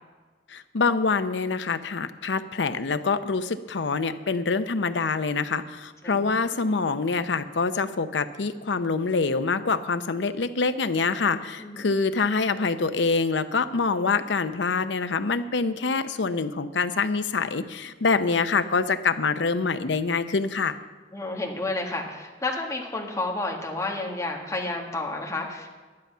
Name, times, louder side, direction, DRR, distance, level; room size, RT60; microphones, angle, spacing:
voice 1, 0.5-20.8, left 4 dB, 75° left, 11 dB, 0.7 m, -25 dB
voice 2, 11.6-11.9 21.1-25.8, left 2 dB, 15° left, 0 dB, 1.7 m, -31 dB
11.5 x 10.5 x 5.6 m, 1.4 s
head